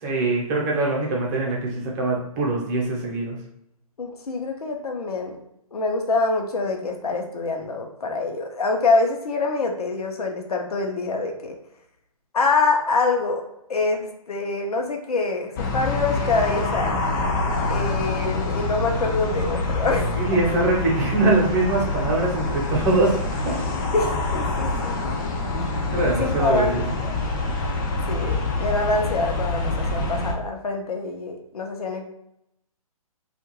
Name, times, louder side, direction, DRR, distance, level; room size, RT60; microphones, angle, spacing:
voice 1, 0.0-3.4 20.2-23.6 25.9-26.9, right 2 dB, 30° right, -2 dB, 0.8 m, -23 dB
voice 2, 4.0-5.4 5.7-11.5 12.3-13.4 13.7-14.0 14.3-17.0 17.7-20.1 23.9-25.6 26.1-27.2 28.1-32.0, left 3 dB, 80° left, 3 dB, 0.7 m, -25 dB
sound 1, 15.6-30.3, left 2 dB, 30° left, 0.5 m, -26 dB
2.4 x 2.2 x 3.0 m, 0.80 s
hypercardioid pair, 145°, 19 cm